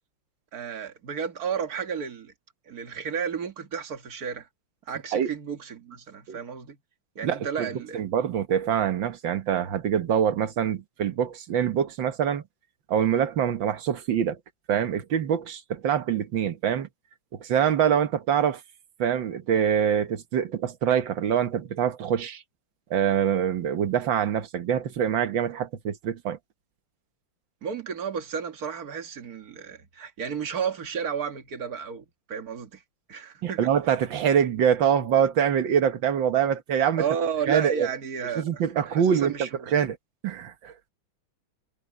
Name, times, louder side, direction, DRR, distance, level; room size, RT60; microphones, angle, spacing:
voice 1, 0.5-2.3 2.7-4.5 4.9-6.8 7.2-8.0 27.6-32.8 33.1-33.7 37.0-39.7, right 7 dB, 45° right, 2.1 m, -32 dB
voice 2, 7.2-7.7 7.9-12.4 12.9-14.4 14.7-16.9 17.3-18.6 19.0-22.4 22.9-26.4 33.4-37.0 37.5-37.9 38.4-40.0 40.2-40.7, right 8 dB, 65° right, 1.9 m, -24 dB
omnidirectional pair, 2.3 m